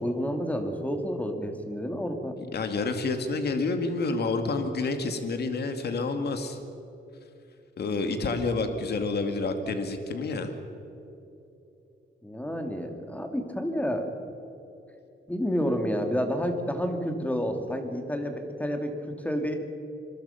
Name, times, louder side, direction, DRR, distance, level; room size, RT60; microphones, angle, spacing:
voice 1, 0.0-2.4 12.2-14.1 15.3-19.5, equal, 5° left, 5 dB, 2.4 m, -30 dB
voice 2, 2.4-6.6 7.8-10.5, left 3 dB, 55° left, 6 dB, 2.3 m, -29 dB
26.0 x 23.0 x 5.8 m, 2.9 s
wide cardioid pair, 140°, 19 cm